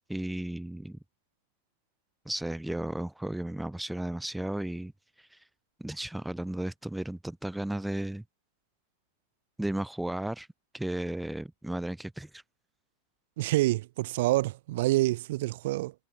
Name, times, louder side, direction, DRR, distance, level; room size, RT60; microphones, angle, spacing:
voice 1, 0.1-1.0 2.2-4.9 5.2-5.4 5.8-8.2 9.6-10.5 10.7-12.4, right 1 dB, 5° right, 6.3 m, -34 dB
voice 2, 13.4-15.9, right 18 dB, 55° right, 3.0 m, -27 dB
figure-of-eight pair, 90°, 0 cm